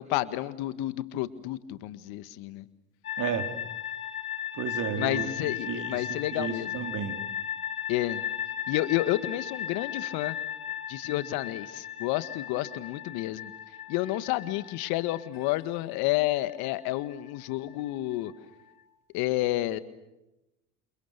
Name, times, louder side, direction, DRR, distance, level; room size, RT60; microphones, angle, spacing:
voice 1, 0.0-2.6 5.0-6.8 7.9-8.2 8.7-10.4 10.9-13.5 13.9-18.3 19.1-19.8, left 16 dB, 60° left, 14 dB, 1.8 m, -30 dB
sound 1, 3.0-18.8, left 9 dB, 85° left, 3.0 m, -37 dB
voice 2, 3.2-3.5 4.6-7.2, right 8 dB, 45° right, 6 dB, 4.2 m, -33 dB
29.0 x 28.5 x 6.8 m, 0.95 s
hypercardioid pair, 75°, 43 cm